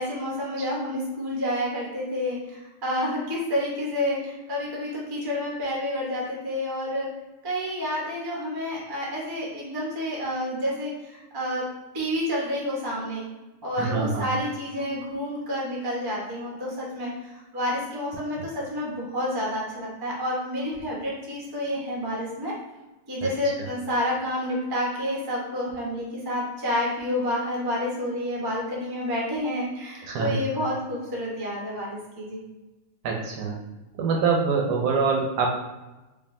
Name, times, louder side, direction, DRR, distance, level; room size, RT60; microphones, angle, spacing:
voice 1, 0.0-7.1 7.4-11.6 11.9-13.2 13.6-22.5 23.1-32.4, left 1 dB, 25° right, -4 dB, 0.4 m, -29 dB
voice 2, 13.8-14.2 30.1-30.4 33.0-33.6 34.0-35.5, right 5 dB, 70° right, 0 dB, 1.1 m, -24 dB
4.5 x 2.8 x 2.6 m, 1.1 s
omnidirectional pair, 2.0 m